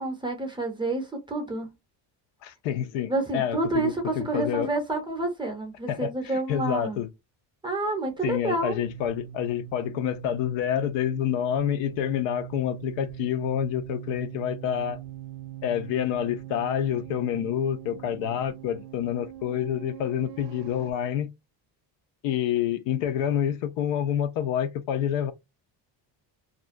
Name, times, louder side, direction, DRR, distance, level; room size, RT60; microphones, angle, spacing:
voice 1, 0.0-1.7 3.1-7.0 7.6-8.8, right 2 dB, 10° right, 0.5 m, -29 dB
voice 2, 2.4-4.7 5.9-7.1 8.2-15.0 15.6-21.3 22.2-25.3, left 10 dB, 85° left, 0.6 m, -28 dB
sound 1, 8.1-20.9, right 11 dB, 90° right, 0.6 m, -42 dB
2.5 x 2.1 x 2.4 m
cardioid pair, 135°, 44 cm